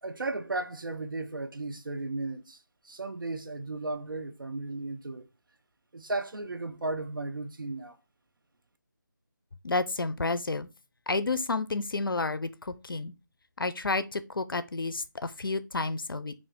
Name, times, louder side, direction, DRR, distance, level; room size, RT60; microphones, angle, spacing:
voice 1, 0.0-2.6 2.8-5.3 5.9-8.0, right 2 dB, 75° right, 0.6 m, -35 dB
voice 2, 9.6-10.7 11.1-13.1 13.6-16.3, left 3 dB, 85° left, 0.4 m, -30 dB
3.3 x 2.5 x 3.6 m
figure-of-eight pair, 160°, 11 cm